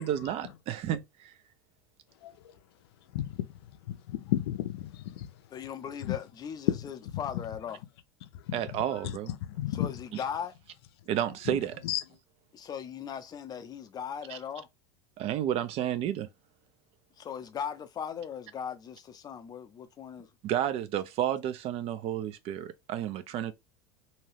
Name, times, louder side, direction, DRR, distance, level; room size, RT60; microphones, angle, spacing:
voice 1, 0.0-1.3 8.5-9.3 11.1-11.8 14.3-14.4 15.2-16.3 20.4-23.5, right 11 dB, 50° right, 0.5 m, -31 dB
voice 2, 3.9-5.3 6.1-6.2 9.6-9.9 11.8-12.0, left 14 dB, 75° left, 0.5 m, -32 dB
voice 3, 5.5-7.8 9.7-10.5 12.5-14.7 17.2-20.3, left 8 dB, 30° left, 0.6 m, -38 dB
2.8 x 2.2 x 3.2 m
hypercardioid pair, 90°, 13 cm